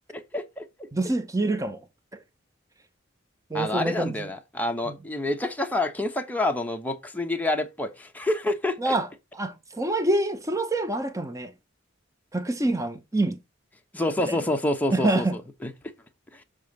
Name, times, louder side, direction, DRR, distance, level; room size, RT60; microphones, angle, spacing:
voice 1, 0.1-0.7 3.5-8.9 13.9-15.2 15.6-15.7, left 1 dB, 10° left, 1.0 m, -27 dB
voice 2, 0.9-1.8 2.1-2.2 3.5-4.3 4.9-5.0 8.8-9.1 9.3-11.5 12.3-13.4 14.3-14.4 14.9-15.4, right 2 dB, 15° right, 0.8 m, -26 dB
6.9 x 3.4 x 5.3 m
head